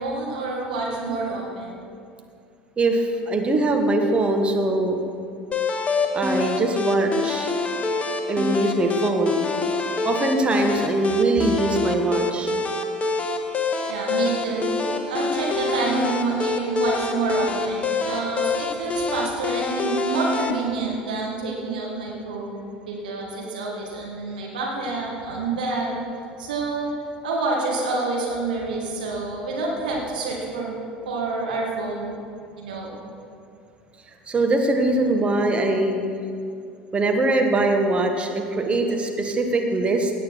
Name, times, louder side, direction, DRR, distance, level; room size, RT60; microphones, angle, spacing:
voice 1, 0.0-1.8 13.9-14.7 15.1-22.6 22.9-26.0 26.4-26.9 27.2-30.8 31.1-32.1 32.6-33.0, right 3 dB, 70° right, -2 dB, 1.9 m, -28 dB
voice 2, 2.8-5.0 6.1-7.5 8.3-9.3 10.0-12.5 34.3-36.0 36.9-40.1, right 2 dB, 25° right, 3 dB, 1.6 m, -22 dB
sound 1, 5.5-20.5, left 3 dB, 25° left, 1.2 m, -26 dB
16.5 x 9.2 x 4.7 m, 2.4 s
figure-of-eight pair, 70°, 5 cm